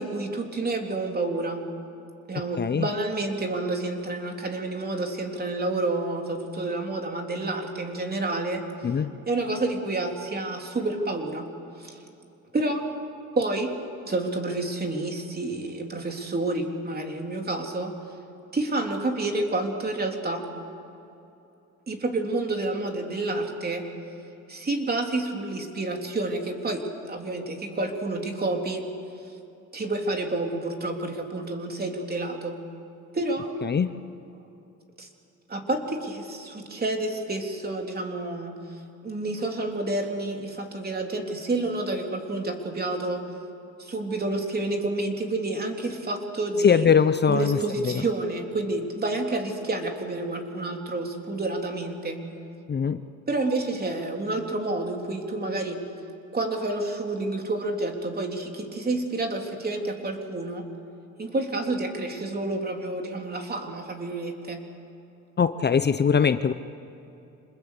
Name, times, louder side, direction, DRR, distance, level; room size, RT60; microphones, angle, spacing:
voice 1, 0.0-1.6 2.3-8.9 9.3-11.5 11.8-12.0 12.5-12.9 13.3-13.7 14.0-17.9 18.5-20.4 21.9-23.8 24.5-28.8 29.7-32.6 33.1-33.5 35.0-35.1 35.5-43.2 43.8-46.9 47.3-52.2 53.3-55.8 56.3-60.6 61.2-64.6, right 2 dB, 30° right, 3 dB, 3.5 m, -29 dB
voice 2, 46.6-47.6 52.7-53.0 65.4-66.5, left 6 dB, 35° left, 11 dB, 0.8 m, -21 dB
26.5 x 20.5 x 8.4 m, 2.8 s
cardioid pair, 90°, 30 cm